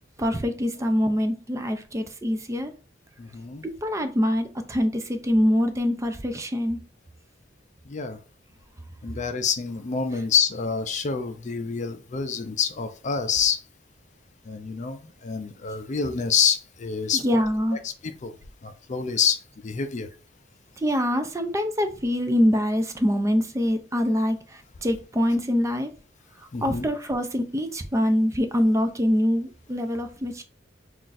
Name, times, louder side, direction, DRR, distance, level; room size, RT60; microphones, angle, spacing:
voice 1, 0.2-2.7 3.8-6.8 17.1-17.8 20.8-25.9 26.6-30.4, equal, 15° right, 0.4 m, -24 dB
voice 2, 3.2-3.6 7.9-8.2 9.0-13.6 14.5-17.4 17.8-18.3 18.6-20.1 26.5-26.8, left 6 dB, 40° left, 0.4 m, -27 dB
5.7 x 2.5 x 2.5 m
head